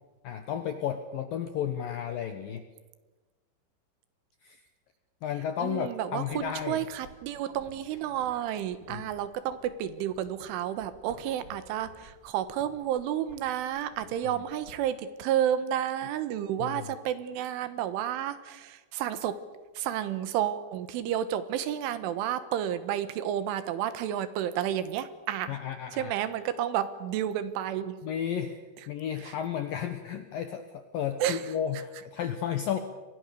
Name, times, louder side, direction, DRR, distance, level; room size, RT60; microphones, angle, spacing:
voice 1, 0.2-2.6 4.4-4.6 5.2-6.9 8.9-9.0 14.4-14.5 16.6-16.9 25.5-26.1 28.0-28.6 28.9-32.8, left 9 dB, 75° left, 8 dB, 2.1 m, -33 dB
voice 2, 5.6-19.4 19.8-25.6 26.0-28.0 29.2-29.3 31.2-31.4, right 10 dB, 80° right, 13 dB, 3.7 m, -31 dB
sound 1, 6.3-14.8, right 2 dB, 30° right, 4.4 m, -55 dB
28.5 x 23.0 x 6.8 m, 1.3 s
omnidirectional pair, 5.7 m